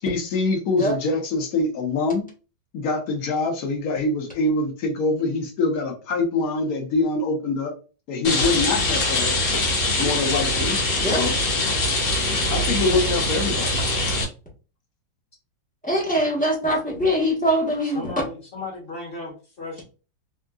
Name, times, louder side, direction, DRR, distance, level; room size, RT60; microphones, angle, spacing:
voice 1, 0.0-2.2 2.7-7.7 8.1-9.4 10.0-10.8 11.1-11.3 12.5-13.7, left 3 dB, 60° left, 3 dB, 1.2 m, -24 dB
Rain, 8.2-14.2, left 2 dB, 85° left, 1.8 m, -23 dB
voice 2, 15.8-18.1, equal, 5° left, -5 dB, 0.8 m, -22 dB
voice 3, 17.8-19.8, left 3 dB, 35° left, -2 dB, 1.5 m, -36 dB
3.7 x 2.6 x 2.3 m, 0.34 s
omnidirectional pair, 2.0 m